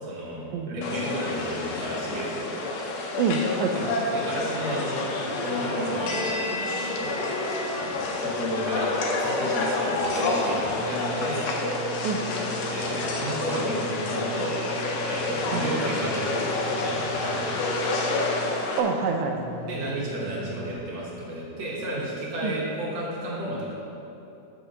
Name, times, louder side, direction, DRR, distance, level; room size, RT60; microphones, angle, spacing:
voice 1, 0.0-2.5 3.7-6.3 6.6-7.3 7.7-11.5 12.7-14.5 15.0-17.6 19.6-23.7, equal, 65° right, -4 dB, 2.2 m, -32 dB
sound 1, 0.8-18.8, left 2 dB, 70° left, 1.8 m, -29 dB
voice 2, 3.2-3.9 12.0-12.2 15.5-15.7 18.8-19.4 22.4-22.5, right 5 dB, 80° right, 4 dB, 1.8 m, -26 dB
sound 2, 10.6-20.7, right 2 dB, 50° left, 1.8 m, -40 dB
6.0 x 5.2 x 6.7 m, 3.0 s
omnidirectional pair, 3.6 m